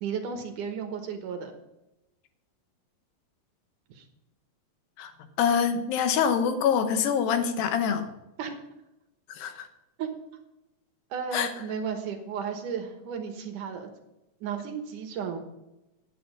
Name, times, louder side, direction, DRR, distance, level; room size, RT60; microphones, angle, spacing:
voice 1, 0.0-1.5 3.9-4.1 8.4-8.6 10.0-10.1 11.1-13.9 14.4-15.4, right 6 dB, 70° right, 5 dB, 2.6 m, -34 dB
voice 2, 5.4-8.1 9.4-9.7 11.3-11.5, left 7 dB, 85° left, 9 dB, 2.8 m, -25 dB
10.0 x 9.2 x 5.1 m, 0.93 s
omnidirectional pair, 4.1 m